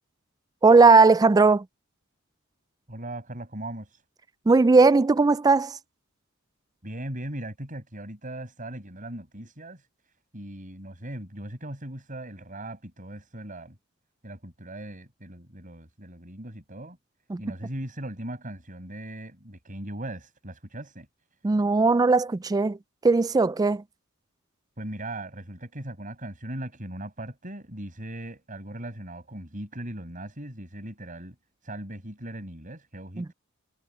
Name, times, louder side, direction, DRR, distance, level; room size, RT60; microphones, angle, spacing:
voice 1, 0.6-1.7 4.5-5.8 17.3-17.4 21.4-22.8 23.0-23.8 33.2-33.3, right 3 dB, 20° right, 0.3 m, -18 dB
voice 2, 2.9-4.0 6.8-13.8 14.2-17.0 17.4-21.1 24.8-31.4 31.6-33.3, right 1 dB, 40° right, 6.5 m, -39 dB
head